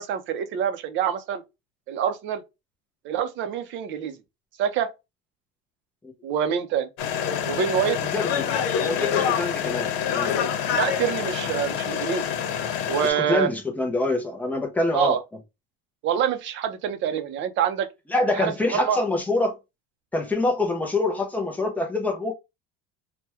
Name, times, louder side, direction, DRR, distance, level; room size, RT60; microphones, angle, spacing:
voice 1, 0.0-1.4 1.9-2.4 3.0-4.1 4.6-4.9 6.2-6.9 7.5-8.0 10.7-12.3 12.9-13.5 14.9-15.2 16.0-17.9 18.4-19.0, right 8 dB, 40° right, 0.6 m, -26 dB
sound 1, 7.0-13.1, left 8 dB, 85° left, 0.9 m, -26 dB
voice 2, 8.1-8.5 8.7-10.3 13.0-15.2 18.1-19.6 20.1-22.3, left 2 dB, 5° left, 0.5 m, -25 dB
3.4 x 2.2 x 2.9 m
cardioid pair, 170°, 30 cm